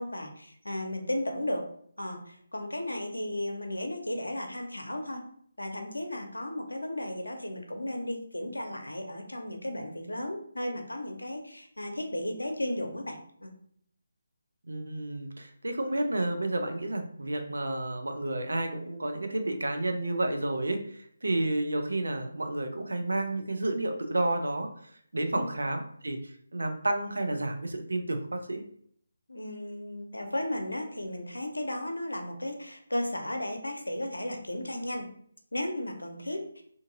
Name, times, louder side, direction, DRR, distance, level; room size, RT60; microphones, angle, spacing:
voice 1, 0.0-1.6 2.0-5.2 5.6-13.5 25.3-25.5 29.3-35.1 35.5-36.4, left 1 dB, 85° left, 4 dB, 0.6 m, -34 dB
voice 2, 14.7-20.8 21.2-24.7 25.1-26.2 26.5-28.6, right 2 dB, 75° right, 5 dB, 0.4 m, -30 dB
2.6 x 2.5 x 2.6 m, 0.64 s
figure-of-eight pair, 150°, 0 cm